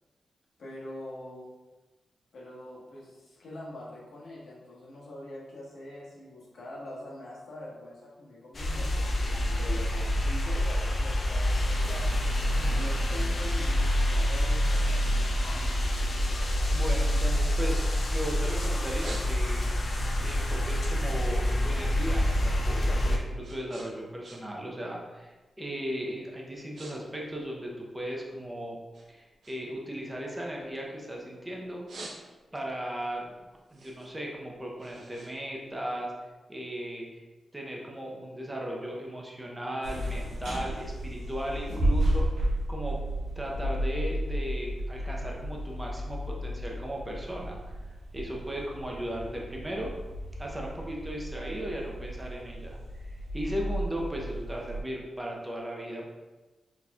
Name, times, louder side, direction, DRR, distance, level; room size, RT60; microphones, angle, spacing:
voice 1, 0.6-1.5 2.3-12.3 12.7-15.7, left 1 dB, 70° left, -5 dB, 1.2 m, -43 dB
sound 1, 8.5-23.2, equal, 40° left, 0.5 m, -27 dB
voice 2, 16.7-19.7 20.2-28.8 29.1-31.8 32.5-33.4 33.7-36.1 36.5-37.2 37.5-43.0 43.4-47.7 48.1-49.9 50.4-56.1, equal, 10° right, -1 dB, 0.7 m, -37 dB
sound 2, 19.0-19.8 20.2-22.4 22.7-24.7 25.0-25.3 25.9-26.1 26.4-27.0 27.2-28.5 28.9-31.2 31.6-32.7 33.1-36.2, right 2 dB, 65° right, 0.8 m, -48 dB
sound 3, 39.8-54.8, right 1 dB, 90° right, 1.1 m, -33 dB
4.2 x 4.0 x 2.4 m, 1.2 s
wide cardioid pair, 145°, 0 cm